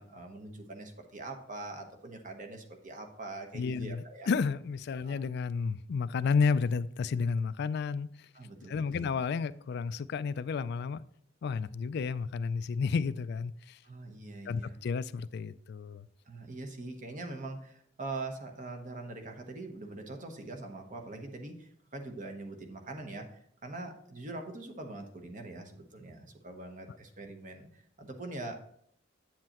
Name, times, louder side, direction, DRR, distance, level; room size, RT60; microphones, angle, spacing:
voice 1, 0.0-4.3 5.0-5.2 8.3-9.1 13.8-14.8 16.3-28.5, right 2 dB, 40° right, 1.0 m, -43 dB
voice 2, 3.5-8.1 8.7-11.0 11.4-13.8 14.5-16.1 26.9-27.0, left 5 dB, 55° left, 0.3 m, -31 dB
8.6 x 7.6 x 3.0 m
head